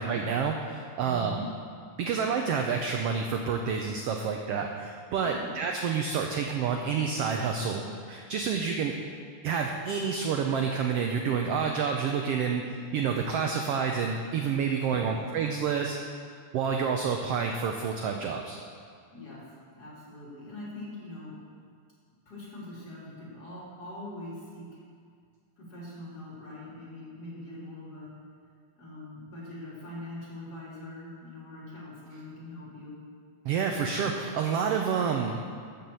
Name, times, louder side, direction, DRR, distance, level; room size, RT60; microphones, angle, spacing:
voice 1, 0.0-1.4 2.0-8.9 9.4-16.0 16.5-18.6 33.4-35.5, right 6 dB, 80° right, 3 dB, 1.3 m, -29 dB
voice 2, 1.0-1.5 5.2-5.5 14.9-15.1 19.1-19.4 19.7-21.4 22.3-24.7 25.6-28.1 28.8-33.0, left 1 dB, 30° left, -8 dB, 3.7 m, -43 dB
12.5 x 5.9 x 7.7 m, 2.1 s
omnidirectional pair, 3.5 m